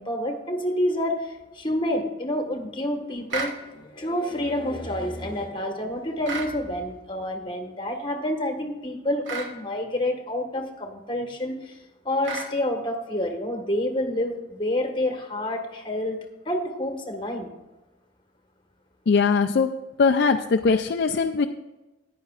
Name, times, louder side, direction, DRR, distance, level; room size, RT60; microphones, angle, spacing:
voice 1, 0.0-11.7 12.0-16.2 16.4-17.5, left 1 dB, 25° left, 3 dB, 1.5 m, -28 dB
sound 1, 3.3-3.6 6.2-6.5 9.2-9.5 12.2-12.5, right 4 dB, 75° right, 1.3 m, -31 dB
voice 2, 19.1-19.7 20.0-21.5, left 5 dB, 60° left, 3 dB, 0.4 m, -21 dB
13.5 x 10.0 x 2.4 m, 1.1 s
head